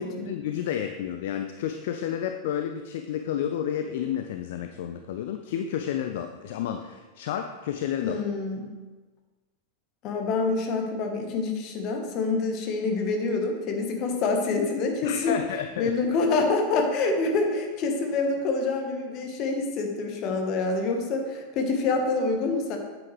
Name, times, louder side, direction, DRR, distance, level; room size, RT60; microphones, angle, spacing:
voice 1, 0.3-8.2 15.0-15.9, left 9 dB, 55° left, 7 dB, 0.4 m, -31 dB
voice 2, 8.0-8.7 10.0-15.4 15.8-22.8, left 3 dB, 40° left, 3 dB, 1.3 m, -26 dB
9.1 x 7.7 x 3.3 m, 1.3 s
figure-of-eight pair, 90°, 0 cm